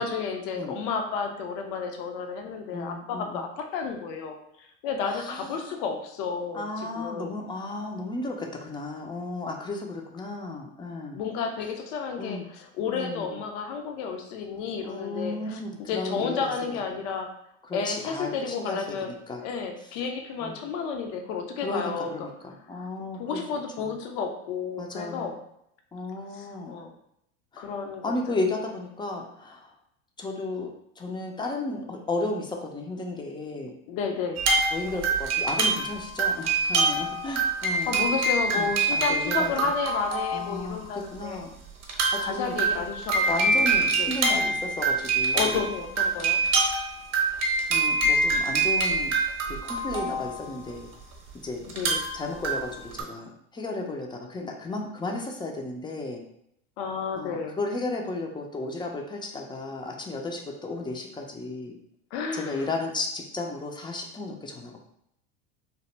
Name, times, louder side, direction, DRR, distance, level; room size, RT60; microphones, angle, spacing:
voice 1, 0.0-7.3 11.1-17.3 17.7-19.1 19.4-22.3 22.7-22.9 23.2-25.3 26.3-26.9 27.6-28.4 33.9-34.4 37.4-41.4 42.2-44.1 45.3-46.4 51.7-52.0 56.8-57.6 62.1-62.7, left 5 dB, 65° left, 4 dB, 0.6 m, -32 dB
voice 2, 2.7-3.4 5.0-5.7 6.5-11.2 12.2-12.4 12.9-13.4 14.8-16.8 17.6-19.0 19.3-19.4 20.4-20.5 21.6-23.4 23.8-23.9 24.8-25.4 25.9-26.8 27.5-27.7 28.0-29.7 30.2-33.7 34.7-38.0 38.5-39.7 40.3-41.5 41.9-42.6 43.3-45.7 47.7-49.1 49.4-50.9 51.4-51.7 52.1-56.2 57.1-61.8 62.3-64.8, left 2 dB, 10° left, 2 dB, 0.4 m, -34 dB
sound 1, 34.4-40.7 41.2-41.3 41.8-50.9 51.7-53.0, right 3 dB, 40° right, 0.8 m, -25 dB
2.9 x 2.1 x 3.2 m, 0.75 s
hypercardioid pair, 95°, 39 cm